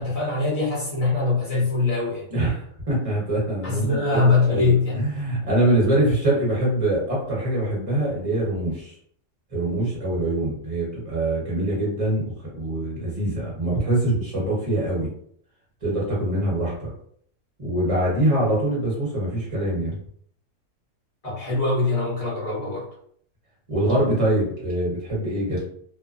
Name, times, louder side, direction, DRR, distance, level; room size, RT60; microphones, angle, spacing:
voice 1, 0.0-2.3 3.6-5.0 21.2-22.9, left 3 dB, 25° left, -6 dB, 1.0 m, -22 dB
voice 2, 2.3-2.6 2.9-8.9 9.5-15.1 15.8-16.9 17.6-19.9 23.7-25.6, right 1 dB, 25° right, -5 dB, 1.1 m, -24 dB
2.8 x 2.2 x 2.5 m, 0.63 s
omnidirectional pair, 1.6 m